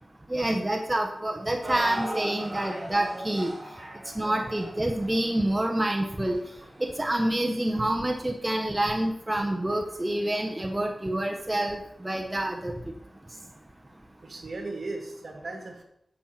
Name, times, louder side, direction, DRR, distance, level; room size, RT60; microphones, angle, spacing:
voice 1, 0.3-3.5 4.1-6.4 6.8-12.7, right 1 dB, 20° right, 2 dB, 1.1 m, -27 dB
sound 1, 1.6-7.8 8.5-8.6 9.4-9.5, right 1 dB, 35° right, 3.5 m, -39 dB
voice 2, 14.2-15.8, right 2 dB, 65° right, 2 dB, 2.2 m, -37 dB
11.0 x 7.5 x 4.4 m, 0.75 s
wide cardioid pair, 100°, 0 cm